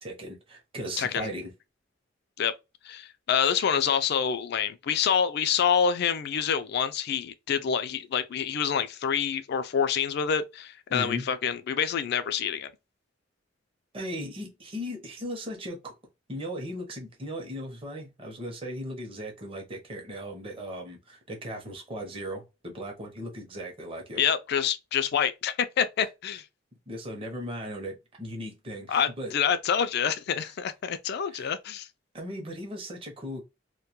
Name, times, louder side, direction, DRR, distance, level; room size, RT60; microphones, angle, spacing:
voice 1, 0.0-1.5 10.9-11.3 13.9-15.9 16.3-24.2 26.9-29.3 30.4-30.5 31.3-31.5 32.1-33.4, equal, 30° right, 0.6 m, -37 dB
voice 2, 1.0-1.3 2.4-2.5 2.8-12.7 24.2-26.4 28.9-31.9, left 7 dB, 60° left, 0.3 m, -27 dB
2.2 x 2.2 x 2.8 m
head